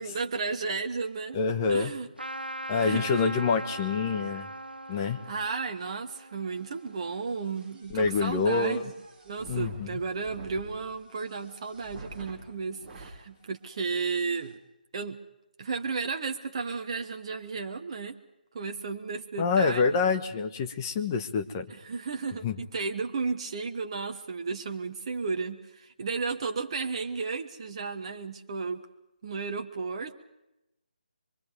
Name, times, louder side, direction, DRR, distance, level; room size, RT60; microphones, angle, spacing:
voice 1, 0.0-1.4 1.7-2.1 2.8-3.3 4.9-8.9 9.2-14.6 14.9-15.2 15.6-18.2 18.5-20.0 21.7-28.8 29.2-30.2, right 4 dB, 35° right, 5 dB, 1.3 m, -33 dB
voice 2, 1.3-1.9 2.7-4.5 4.9-5.2 7.9-8.9 9.5-10.0 19.4-21.7 22.4-22.6, left 5 dB, 20° left, 5 dB, 1.3 m, -26 dB
Trumpet, 2.2-7.2, right 1 dB, 85° right, 1.0 m, -40 dB
sound 1, 6.5-13.2 13.7-13.8 14.1-14.5, right 2 dB, 15° right, 3.9 m, -48 dB
24.5 x 24.0 x 5.2 m, 0.89 s
figure-of-eight pair, 150°, 5 cm